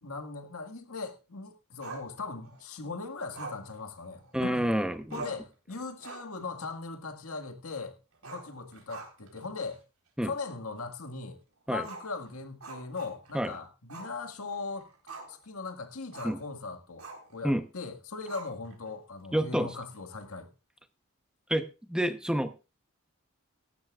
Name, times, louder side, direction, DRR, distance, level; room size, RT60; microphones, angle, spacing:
voice 1, 0.0-4.7 5.1-8.0 8.2-9.8 10.2-11.4 11.7-14.9 15.3-20.5, left 4 dB, 85° left, 6 dB, 2.0 m, -39 dB
Growling, 1.8-2.6 3.3-4.6 4.8-4.9 5.1-5.5 5.9-6.4 6.7-6.8 8.1-9.4 9.7-9.8 10.4-10.5 11.8-13.4 13.9-14.2 14.5-15.5 16.1-16.4 17.0-17.4 18.3-18.9, right 3 dB, 85° right, 4.0 m, -44 dB
voice 2, 4.3-5.2 10.2-10.3 11.7-11.8 13.3-13.5 16.2-16.4 17.4-17.6 19.3-19.8 21.5-22.6, equal, 5° right, 8 dB, 0.9 m, -28 dB
17.5 x 14.0 x 2.5 m, 0.30 s
head